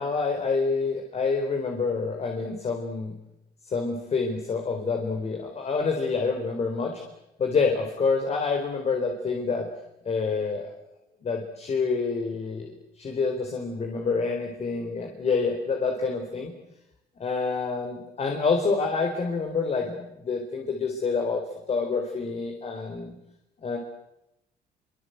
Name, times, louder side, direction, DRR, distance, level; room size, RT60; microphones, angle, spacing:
voice 1, 0.0-3.2 3.6-7.0 7.4-9.7 10.0-10.7 11.2-16.5 17.2-21.4 21.7-23.1 23.6-23.8, left 4 dB, 40° left, 3 dB, 4.4 m, -27 dB
25.5 x 25.0 x 8.1 m, 0.89 s
cardioid pair, 110°, 17 cm